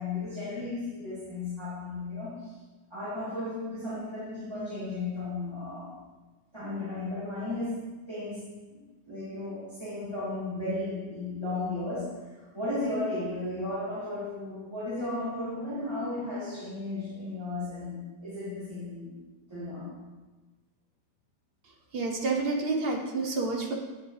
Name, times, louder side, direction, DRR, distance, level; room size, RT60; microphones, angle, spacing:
voice 1, 0.0-2.6 2.9-6.0 6.5-19.2 19.5-20.0, left 2 dB, 15° right, -13 dB, 2.0 m, -35 dB
voice 2, 21.9-23.7, right 3 dB, 50° right, 2 dB, 0.7 m, -29 dB
9.1 x 4.9 x 3.2 m, 1.2 s
omnidirectional pair, 1.9 m